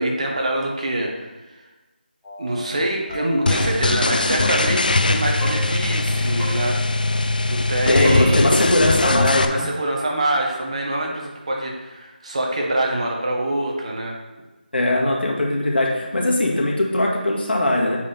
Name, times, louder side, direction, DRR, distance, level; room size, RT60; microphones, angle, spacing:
voice 1, 0.0-1.6 2.4-8.6 9.5-14.1, right 1 dB, 40° right, 0 dB, 1.3 m, -25 dB
sound 1, 2.2-2.7 3.1-3.7 4.4-4.9 5.4-6.8 8.0-8.7 9.0-9.4, right 2 dB, ahead, 1.7 m, -33 dB
sound 2, 3.5-9.5, left 2 dB, 55° left, 0.5 m, -21 dB
voice 2, 7.9-9.7 14.7-18.0, left 1 dB, 80° left, -2 dB, 2.1 m, -20 dB
7.4 x 4.8 x 4.5 m, 1.1 s
figure-of-eight pair, 175°, 5 cm